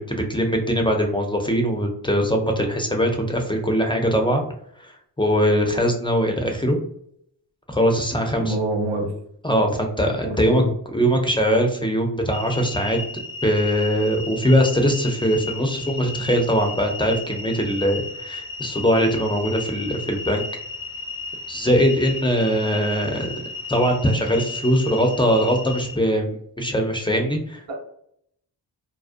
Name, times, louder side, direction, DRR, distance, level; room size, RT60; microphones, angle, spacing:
voice 1, 0.0-4.4 4.8-6.8 7.7-8.6 9.4-10.6 10.9-13.0 13.4-20.4 21.5-23.3 23.7-27.8, equal, 10° left, 2 dB, 0.4 m, -21 dB
voice 2, 8.4-9.1 10.5-10.7 27.7-27.8, right 1 dB, 85° right, -1 dB, 0.9 m, -25 dB
sound 1, 12.3-26.0, left 3 dB, 75° left, 0.7 m, -34 dB
2.5 x 2.0 x 2.4 m, 0.70 s
cardioid pair, 55°, 45 cm